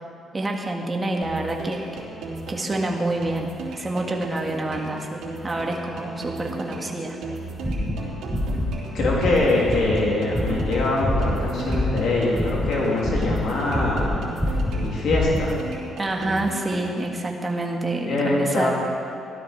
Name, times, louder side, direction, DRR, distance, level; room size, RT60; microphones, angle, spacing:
voice 1, 0.3-1.8 2.5-7.2 16.0-18.7, right 2 dB, 25° right, 1 dB, 1.8 m, -27 dB
sound 1, 1.2-17.2, right 3 dB, 75° right, 3.2 m, -36 dB
sound 2, 7.6-8.7 9.0-9.4 9.6-12.1 12.3-14.1 14.4-15.5, left 1 dB, 5° left, 3.8 m, -25 dB
voice 2, 8.9-14.2 14.7-15.6 18.0-18.7, left 2 dB, 75° left, -4 dB, 2.8 m, -23 dB
15.5 x 12.5 x 4.4 m, 2.5 s
cardioid pair, 90°, 0 cm